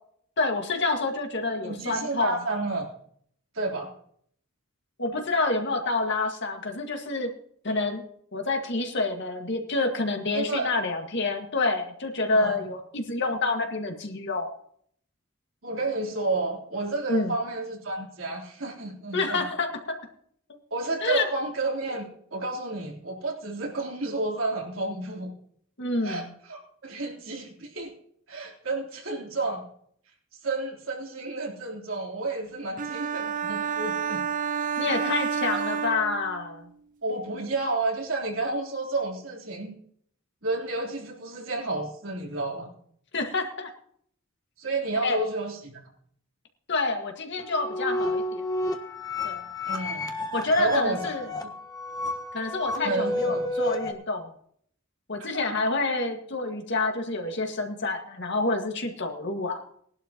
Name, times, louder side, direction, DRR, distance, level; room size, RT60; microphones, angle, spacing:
voice 1, 0.4-2.4 5.0-7.3 7.6-8.0 8.3-14.5 17.1-17.3 19.1-19.7 21.0-21.3 25.8-26.2 34.8-36.7 43.1-43.7 45.0-45.2 46.7-48.4 49.2-49.4 50.3-51.3 52.3-54.3 55.1-59.6, left 3 dB, 60° left, 3 dB, 1.9 m, -28 dB
voice 2, 1.6-2.9 3.5-3.9 10.3-10.7 12.3-12.6 15.6-19.4 20.7-25.3 26.0-27.9 28.3-29.7 30.4-34.2 37.0-39.7 40.4-42.7 44.6-45.8 49.7-50.1 50.6-51.1 51.4-51.5 52.8-53.4 55.2-55.4, right 2 dB, 80° right, -2 dB, 3.7 m, -31 dB
sound 1, 32.8-36.7, right 6 dB, 40° right, 0.4 m, -29 dB
sound 2, 47.4-53.9, left 2 dB, 20° left, 1.3 m, -31 dB
19.5 x 11.5 x 3.0 m, 0.64 s
head